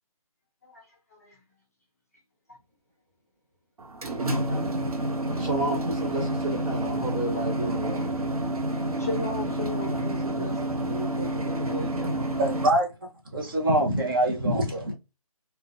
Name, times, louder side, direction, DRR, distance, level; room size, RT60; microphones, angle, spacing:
voice 1, 0.6-1.4 2.5-2.6 4.5-4.6 5.5-5.6 9.0-12.4, left 2 dB, 25° left, 0.3 m, -37 dB
sound 1, 3.8-12.7, right 1 dB, 85° right, 0.6 m, -29 dB
voice 2, 5.4-8.1, right 1 dB, 15° right, 0.9 m, -31 dB
voice 3, 12.4-12.9 13.3-14.9, right 1 dB, 35° right, 0.6 m, -24 dB
2.5 x 2.1 x 2.3 m
figure-of-eight pair, 150°, 19 cm